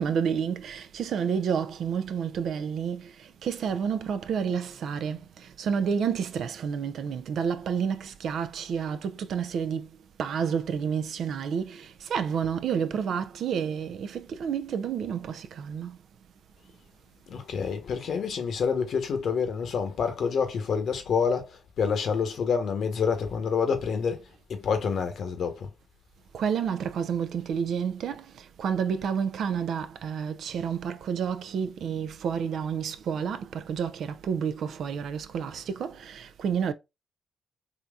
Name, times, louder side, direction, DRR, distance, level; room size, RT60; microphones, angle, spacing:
voice 1, 0.0-3.1 3.4-5.2 5.6-9.9 10.2-15.9 26.3-28.2 28.6-36.7, right 7 dB, 70° right, 0.4 m, -30 dB
voice 2, 17.3-25.7, left 6 dB, 65° left, 0.9 m, -28 dB
3.6 x 2.9 x 2.3 m
supercardioid pair, 55°, 0 cm